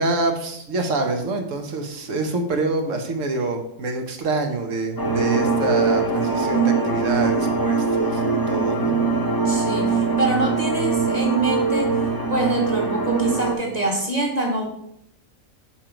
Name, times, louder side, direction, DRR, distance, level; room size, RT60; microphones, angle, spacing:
voice 1, 0.0-8.9, right 3 dB, 65° right, 5 dB, 1.3 m, -26 dB
sound 1, 5.0-13.6, right 4 dB, 20° left, 0.7 m, -22 dB
voice 2, 9.4-11.9 12.3-14.7, right 2 dB, 30° right, 0 dB, 1.5 m, -25 dB
5.9 x 4.5 x 5.1 m, 0.77 s
omnidirectional pair, 1.4 m